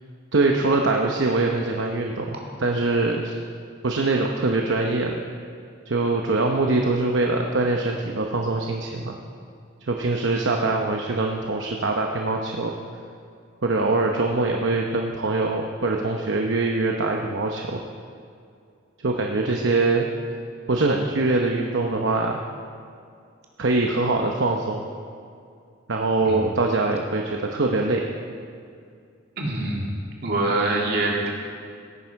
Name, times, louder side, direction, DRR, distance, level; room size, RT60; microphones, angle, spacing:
voice 1, 0.3-3.4 3.8-5.2 5.9-9.1 9.9-12.7 13.6-17.8 19.0-20.1 20.7-22.4 23.6-24.9 25.9-28.0, right 3 dB, 70° right, 1 dB, 0.8 m, -23 dB
voice 2, 29.4-29.9 30.2-31.3, right 2 dB, 55° right, -2 dB, 2.3 m, -24 dB
17.0 x 9.8 x 4.7 m, 2.3 s
head